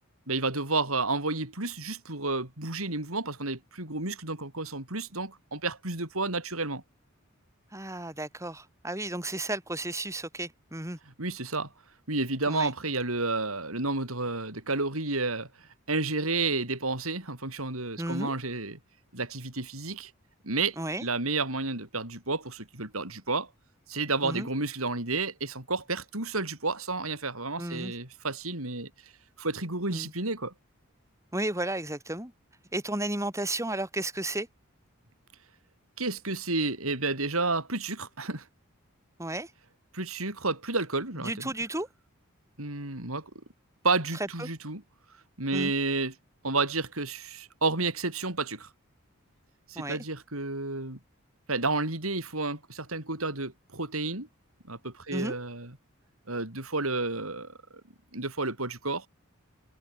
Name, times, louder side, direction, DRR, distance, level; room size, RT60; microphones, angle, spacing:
voice 1, 0.3-6.8 11.2-11.7 12.1-15.5 15.9-18.8 19.1-20.1 20.4-23.5 23.9-28.9 29.4-30.5 36.0-38.4 39.9-41.5 42.6-43.3 43.8-44.8 45.4-46.1 46.4-48.7 49.7-51.0 51.5-54.3 54.7-55.7 56.3-57.6 58.1-59.1, right 3 dB, 90° right, 7.1 m, -31 dB
voice 2, 7.7-11.0 12.5-12.7 18.0-18.3 20.8-21.0 24.2-24.5 27.6-27.9 29.9-30.1 31.3-32.3 32.7-34.5 39.2-39.5 41.2-41.9 44.4-44.5 45.5-45.7 49.7-50.0 55.1-55.4, right 1 dB, 15° right, 7.9 m, -33 dB
head